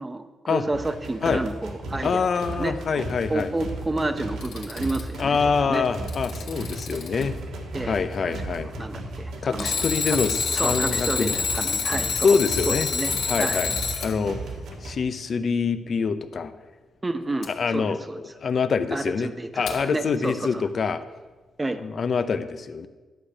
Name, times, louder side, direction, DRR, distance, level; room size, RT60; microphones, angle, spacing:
voice 1, 0.0-2.2 2.5-3.0 3.3-5.8 7.7-10.2 10.5-12.4 12.7-13.7 17.0-18.2 18.9-20.6 21.6-21.8, right 2 dB, 20° right, 9 dB, 0.7 m, -30 dB
sound 1, 0.7-14.9, right 2 dB, 85° right, 1.6 m, -35 dB
voice 2, 2.0-3.5 5.2-7.3 7.8-8.7 9.4-11.3 12.2-12.9 13.3-13.7 14.0-14.4 14.8-16.5 17.5-18.0 18.4-21.0 21.8-22.9, left 5 dB, 50° left, 11 dB, 0.6 m, -25 dB
Alarm, 4.2-5.2 5.9-7.2 9.6-14.1 17.4-17.5 19.7-19.8, left 5 dB, 85° left, 1.6 m, -27 dB
11.0 x 4.9 x 7.2 m, 1.3 s
cardioid pair, 100°, 0 cm